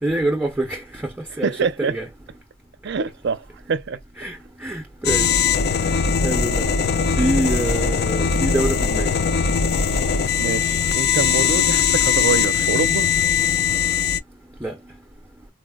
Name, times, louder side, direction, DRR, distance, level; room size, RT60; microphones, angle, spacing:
voice 1, 0.0-1.5 1.8-2.1 4.2-5.4 6.2-6.7 7.2-9.1 14.6-14.8, right 1 dB, 10° right, 0.5 m, -25 dB
voice 2, 1.4-2.0 2.8-4.0 5.8-6.2 10.4-13.1, right 5 dB, 60° right, 0.5 m, -25 dB
sound 1, 5.0-14.2, left 6 dB, 55° left, 0.4 m, -20 dB
4.1 x 2.0 x 2.2 m
head